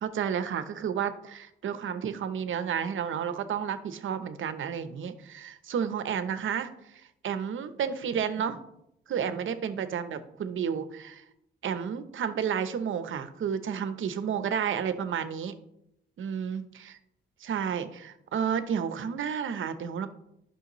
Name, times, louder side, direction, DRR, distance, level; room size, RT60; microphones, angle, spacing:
voice 1, 0.0-8.6 9.1-11.2 11.6-15.5 16.2-16.6 16.9-17.0 17.4-20.1, right 7 dB, 70° right, 11 dB, 0.8 m, -31 dB
11.0 x 6.2 x 3.1 m, 0.79 s
cardioid pair, 65°, 21 cm